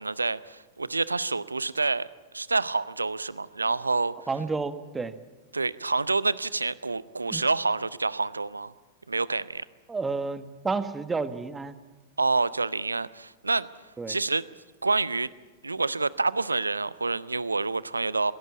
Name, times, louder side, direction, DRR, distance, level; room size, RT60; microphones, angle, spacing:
voice 1, 0.0-2.1 2.3-4.1 5.5-8.7 9.1-9.6 12.2-13.7 14.1-14.4 14.8-15.3 15.6-18.3, right 3 dB, 80° right, 19 dB, 0.6 m, -27 dB
voice 2, 4.3-5.2 7.2-7.4 9.9-11.8 14.0-14.2, right 4 dB, 15° right, 12 dB, 1.3 m, -31 dB
21.0 x 17.0 x 8.5 m, 1.2 s
figure-of-eight pair, 90°, 0 cm